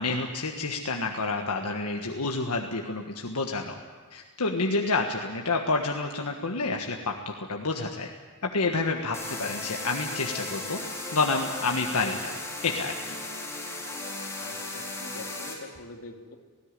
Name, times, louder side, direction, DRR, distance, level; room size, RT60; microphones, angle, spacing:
voice 1, 0.0-3.8 4.1-8.1 8.4-10.8 11.1-12.4 12.6-13.2, left 3 dB, 90° left, 2 dB, 1.5 m, -29 dB
sound 1, 9.1-15.5, left 2 dB, 15° left, 4.3 m, -36 dB
voice 2, 14.3-16.4, left 2 dB, 70° left, 2 dB, 2.5 m, -45 dB
18.5 x 16.5 x 9.9 m, 1.5 s
head